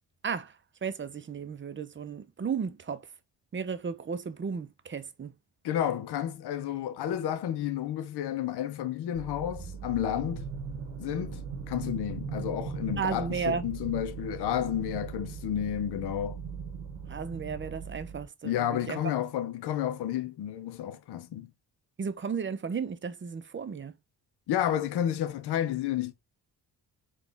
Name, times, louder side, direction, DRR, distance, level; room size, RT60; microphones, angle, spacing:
voice 1, 0.8-3.1 3.5-5.3 13.0-13.6 17.1-19.0 22.0-23.9, right 6 dB, 25° right, 0.6 m, -34 dB
voice 2, 5.6-10.5 11.0-11.4 11.7-16.4 18.4-21.5 24.5-26.1, left 10 dB, 65° left, 0.6 m, -31 dB
sound 1, 9.1-18.3, right 6 dB, 90° right, 0.9 m, -39 dB
4.0 x 2.4 x 3.3 m
supercardioid pair, 60°, 44 cm